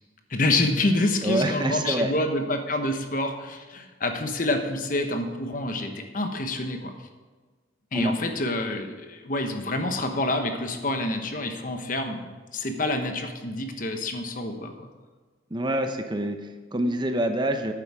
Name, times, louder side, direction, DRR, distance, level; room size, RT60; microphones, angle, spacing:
voice 1, 0.3-6.9 7.9-14.9, left 2 dB, 45° left, 6 dB, 1.1 m, -27 dB
voice 2, 1.2-2.1 7.9-8.1 15.5-17.7, right 1 dB, 25° right, 6 dB, 0.7 m, -26 dB
10.5 x 8.5 x 4.8 m, 1.4 s
head